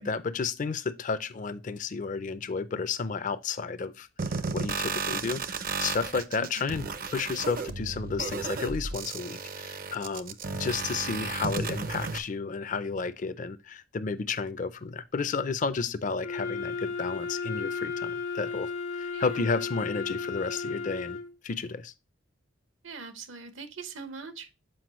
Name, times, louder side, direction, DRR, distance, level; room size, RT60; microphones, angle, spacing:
voice 1, 0.0-18.7 19.0-21.2 21.4-21.9, left 4 dB, 40° left, 0.4 m, -32 dB
sound 1, 4.2-12.2, right 4 dB, 45° right, 0.5 m, -33 dB
Wind instrument woodwind instrument, 16.2-21.3, left 4 dB, 70° left, 1.0 m, -34 dB
voice 2, 19.1-19.5 22.8-24.5, right 4 dB, 80° right, 1.0 m, -42 dB
7.7 x 4.8 x 3.0 m
head